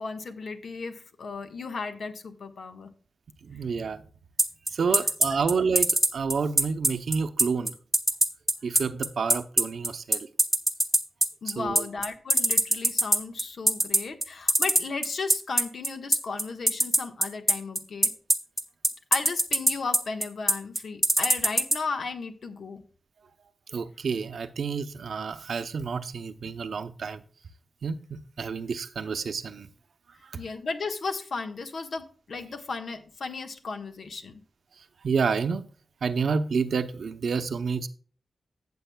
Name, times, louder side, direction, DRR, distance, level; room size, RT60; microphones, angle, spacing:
voice 1, 0.0-2.9 11.4-18.1 19.1-22.8 30.4-34.4, left 4 dB, 70° left, 6 dB, 1.4 m, -35 dB
voice 2, 3.4-4.1 4.7-7.8 8.6-10.3 11.5-11.9 23.7-27.2 27.8-29.7 30.2-30.4 34.8-35.7 36.0-37.9, right 5 dB, 75° right, 10 dB, 0.8 m, -29 dB
sound 1, 4.4-21.8, right 1 dB, 5° right, 1.1 m, -21 dB
14.5 x 7.6 x 2.3 m, 0.41 s
wide cardioid pair, 130°, 0 cm